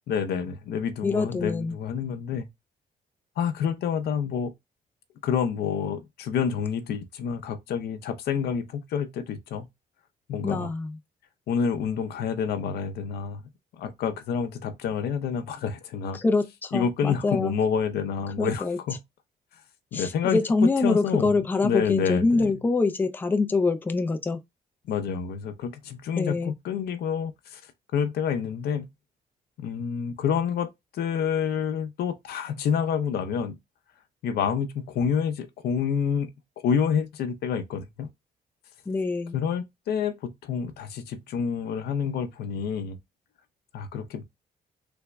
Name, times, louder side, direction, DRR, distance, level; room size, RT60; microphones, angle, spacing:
voice 1, 0.1-2.5 3.4-4.5 5.2-9.7 10.3-10.7 11.5-13.4 13.8-16.2 16.7-19.0 19.9-20.4 20.8-21.4 21.6-22.5 24.9-27.6 27.9-28.9 29.6-33.6 34.2-36.3 36.6-38.1 39.3-43.0 43.7-44.2, left 7 dB, 80° left, 0.5 m, -28 dB
voice 2, 1.0-1.7 10.4-11.0 16.1-17.6 18.4-18.8 19.9-24.4 26.2-26.5 38.9-39.4, left 3 dB, 10° left, 0.3 m, -25 dB
3.3 x 2.0 x 3.3 m
cardioid pair, 125°, 16 cm